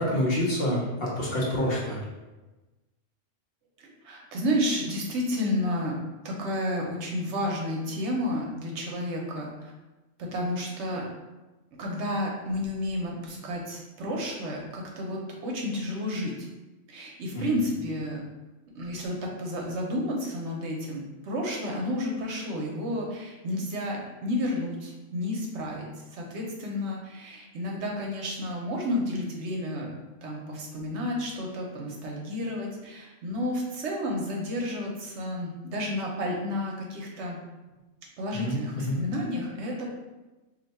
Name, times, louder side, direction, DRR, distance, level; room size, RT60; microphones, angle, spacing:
voice 1, 0.0-2.0 17.3-17.5 38.3-38.9, left 1 dB, 55° left, -5 dB, 0.9 m, -27 dB
voice 2, 3.8-5.9 6.2-9.7 10.2-11.0 11.8-16.5 16.9-18.2 18.7-25.8 26.1-29.9 30.2-37.4 38.2-39.9, left 1 dB, 65° right, -1 dB, 0.9 m, -31 dB
2.6 x 2.2 x 4.0 m, 1.1 s
omnidirectional pair, 1.3 m